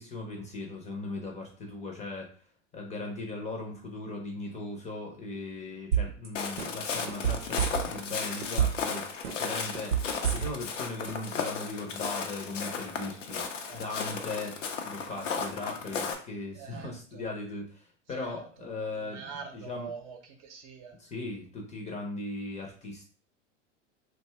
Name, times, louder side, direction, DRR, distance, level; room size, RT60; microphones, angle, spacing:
voice 1, 0.0-2.3 2.7-10.0 10.3-13.4 13.7-14.6 14.8-19.9 21.0-23.1, left 2 dB, 20° left, 1 dB, 0.6 m, -38 dB
sound 1, 5.9-6.3 6.6-8.1 8.4-8.9 9.2-10.8 11.1-11.2, right 8 dB, 90° right, 0.8 m, -27 dB
Walk footsteps, 6.3-16.1, left 5 dB, 85° left, 0.6 m, -35 dB
voice 2, 13.4-13.9 16.5-17.2 18.1-20.9, right 6 dB, 45° right, 3 dB, 0.7 m, -45 dB
2.6 x 2.3 x 3.2 m, 0.42 s
hypercardioid pair, 95°, 37 cm